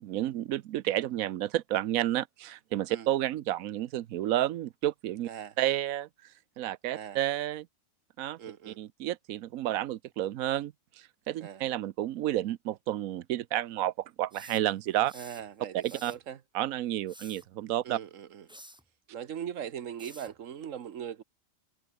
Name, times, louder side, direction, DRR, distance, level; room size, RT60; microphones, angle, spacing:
voice 1, 0.0-5.3 5.6-6.1 6.6-7.7 8.2-8.4 8.7-15.1 15.8-16.1 16.5-18.0, right 13 dB, 90° right, 1.1 m, -31 dB
voice 2, 8.4-8.8 11.4-11.7 15.1-16.4 17.8-18.5 19.1-21.2, right 9 dB, 70° right, 1.4 m, -40 dB
sound 1, 14.3-15.4 15.8-16.2 16.9-17.5 18.5-18.8 20.0-20.4, equal, 5° right, 1.8 m, -51 dB
omnidirectional pair, 1.4 m